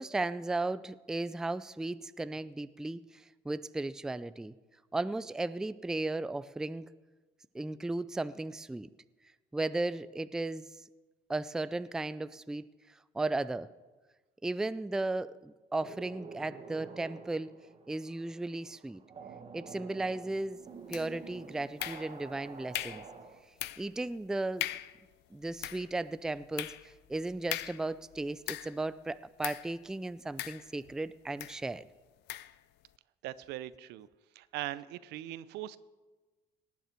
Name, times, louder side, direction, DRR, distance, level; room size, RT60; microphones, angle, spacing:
voice 1, 0.0-4.5 4.9-6.9 7.5-8.9 9.5-10.7 11.3-12.6 13.1-13.7 14.4-17.5 17.9-19.0 19.5-20.6 20.9-23.0 23.8-24.7 25.3-31.9, right 2 dB, 5° right, 16 dB, 0.3 m, -35 dB
sound 1, 15.8-23.4, right 5 dB, 35° right, 1.3 m, -49 dB
sound 2, 20.9-21.3 21.8-22.4 22.7-23.1 23.6-24.0 24.3-24.4 24.6-25.0 25.4-28.9 29.4-29.7 30.4-31.0 31.4-31.6 32.3-32.6, left 15 dB, 85° left, 0.5 m, -40 dB
voice 2, 33.2-34.1 34.3-35.8, right 14 dB, 85° right, 17 dB, 0.5 m, -40 dB
18.5 x 9.4 x 4.5 m, 1.3 s
cardioid pair, 110°, 17 cm